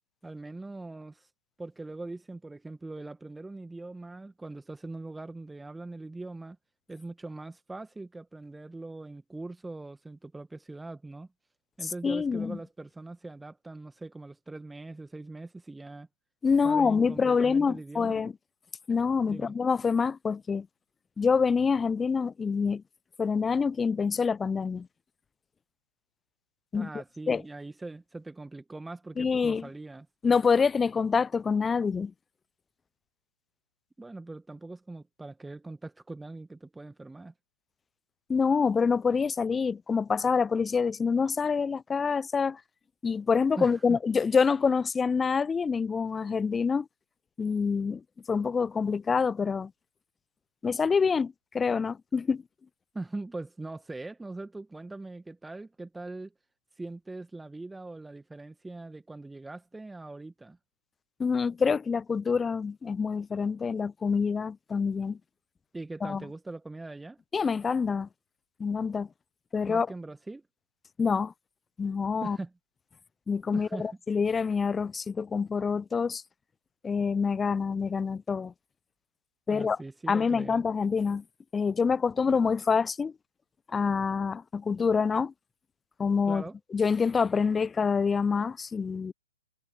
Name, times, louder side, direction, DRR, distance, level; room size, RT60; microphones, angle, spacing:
voice 1, 0.2-1.3 1.6-6.6 6.9-11.3 11.8-16.1 16.6-18.2 19.3-19.5 26.7-30.1 34.0-37.3 43.6-44.0 52.9-56.3 56.8-60.6 65.7-67.2 69.7-70.4 72.2-72.5 73.5-73.9 79.5-80.6 86.3-86.6, right 2 dB, 5° right, 1.9 m, -41 dB
voice 2, 11.8-12.6 16.4-18.3 18.9-20.7 21.2-22.8 23.2-24.9 26.7-26.9 27.3-27.4 29.2-29.7 30.2-32.1 38.3-42.6 43.0-46.9 47.4-48.0 48.3-49.7 50.6-52.4 61.2-65.2 66.0-66.2 67.3-68.1 68.6-69.1 69.5-69.9 71.0-71.3 71.8-72.4 73.3-76.2 76.8-78.5 79.5-79.8 80.1-81.2 81.5-83.1 83.7-85.3 86.0-86.4 86.7-89.1, left 5 dB, 10° left, 0.6 m, -26 dB
figure-of-eight pair, 120°, 0 cm